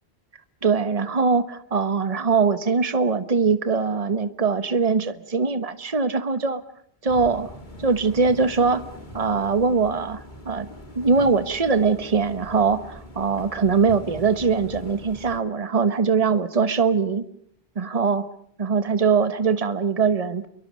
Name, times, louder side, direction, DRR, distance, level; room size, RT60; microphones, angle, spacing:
voice 1, 0.6-6.6 7.0-7.5 7.8-8.8 9.1-10.7 10.9-17.2 17.8-18.2 18.6-20.5, right 5 dB, 35° right, 13 dB, 1.2 m, -22 dB
sound 1, 7.1-15.4, left 1 dB, 50° left, 3.0 m, -41 dB
28.5 x 23.0 x 6.3 m, 0.66 s
omnidirectional pair, 1.1 m